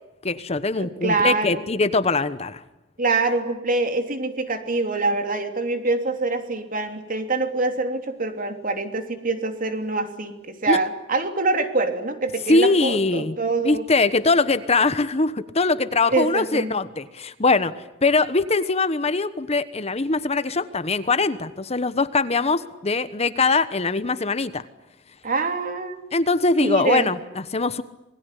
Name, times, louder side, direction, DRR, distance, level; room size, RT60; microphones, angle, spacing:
voice 1, 0.2-2.6 10.7-10.8 12.5-13.3 13.6-17.7 18.0-24.6 26.1-27.8, left 3 dB, 35° left, 13 dB, 1.1 m, -22 dB
voice 2, 0.8-1.6 3.0-13.8 16.1-16.7 25.2-26.0 26.6-27.1, right 3 dB, 45° right, 7 dB, 3.2 m, -25 dB
27.5 x 21.0 x 10.0 m, 0.94 s
head